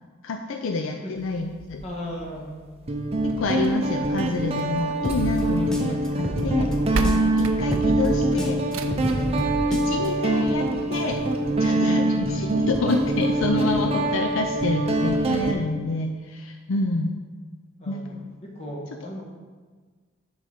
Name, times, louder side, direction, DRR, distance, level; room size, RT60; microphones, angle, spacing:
voice 1, 0.2-1.8 3.2-6.7 7.4-8.6 9.7-11.2 11.6-17.2 17.9-18.1, left 3 dB, 70° left, 4 dB, 0.5 m, -28 dB
Guitar, 1.6-1.9 2.9-15.5, right 2 dB, 30° right, 0.6 m, -24 dB
voice 2, 1.8-2.5 11.7-12.0 17.8-19.2, equal, 35° left, -2 dB, 1.5 m, -36 dB
sound 1, 4.6-5.8 6.6-6.7 6.9-9.2 10.6-10.7 11.1-11.2 11.5-11.6 12.2-12.3, right 2 dB, 85° right, 0.5 m, -31 dB
sound 2, 5.0-7.4 7.7-10.1, equal, 5° left, 0.7 m, -29 dB
6.6 x 4.0 x 6.4 m, 1.5 s
head